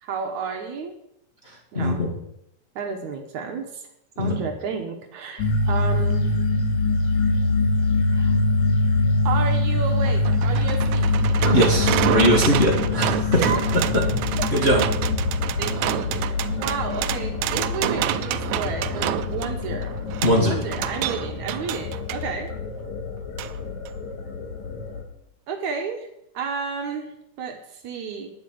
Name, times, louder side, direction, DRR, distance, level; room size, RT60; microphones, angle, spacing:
voice 1, 0.0-0.9 1.7-2.1 2.8-3.8 4.2-6.3 8.1-8.4 9.3-11.1 13.4-13.6 15.6-20.0 20.5-22.5 25.5-26.1 26.3-28.3, right 5 dB, 65° right, 4 dB, 2.2 m, -31 dB
voice 2, 1.7-2.1 4.2-4.4 11.5-13.4 14.5-14.8 20.2-20.6, equal, 25° left, -2 dB, 1.5 m, -20 dB
sound 1, 5.4-25.0, left 2 dB, 60° left, 2.8 m, -24 dB
sound 2, 9.7-22.2 23.4-23.5 23.9-24.0, right 13 dB, 85° right, 2.3 m, -28 dB
9.9 x 8.1 x 7.7 m, 0.79 s
omnidirectional pair, 3.9 m